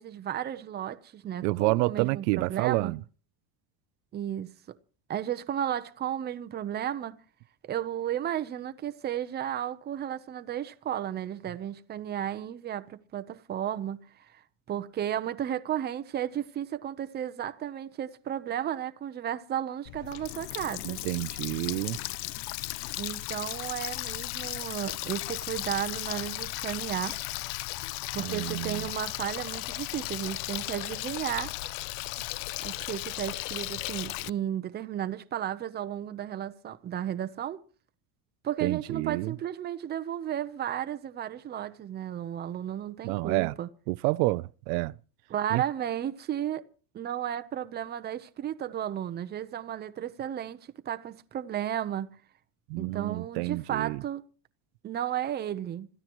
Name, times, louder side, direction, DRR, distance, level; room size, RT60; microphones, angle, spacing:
voice 1, 0.0-2.9 4.1-4.8 5.1-7.2 7.6-14.0 14.3-14.4 14.7-21.0 23.0-27.2 28.1-31.5 32.6-37.6 38.4-43.7 45.3-46.6 46.9-52.2 52.8-54.2 54.8-55.9, right 10 dB, 20° right, 0.8 m, -33 dB
voice 2, 1.4-3.0 20.8-22.0 28.2-28.8 38.6-39.3 43.0-43.5 43.9-44.9 45.5-45.6 52.7-54.0, right 23 dB, 80° right, 0.6 m, -29 dB
Water tap faucet, 19.9-34.3, left 20 dB, 90° left, 0.7 m, -36 dB
26.5 x 14.0 x 3.1 m
cardioid pair, 165°, 49 cm